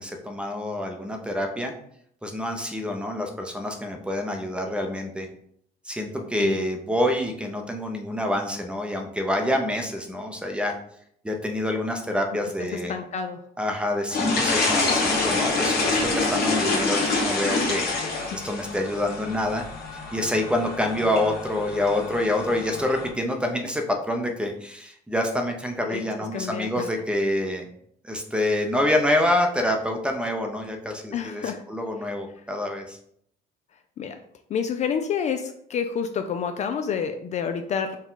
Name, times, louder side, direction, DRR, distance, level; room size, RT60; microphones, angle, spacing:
voice 1, 0.0-1.7 2.2-5.3 5.8-10.7 11.2-12.9 13.6-17.9 18.3-19.6 20.1-27.7 28.0-33.0, left 1 dB, 5° right, 3 dB, 0.6 m, -27 dB
voice 2, 12.7-13.4 18.3-18.4 25.9-26.0 26.3-26.9 31.1-31.6 34.0-34.2 34.5-38.0, left 7 dB, 45° left, 7 dB, 0.4 m, -28 dB
sound 1, 14.1-23.1, left 3 dB, 70° left, 1.2 m, -26 dB
4.4 x 2.3 x 3.8 m, 0.68 s
cardioid pair, 110°, 17 cm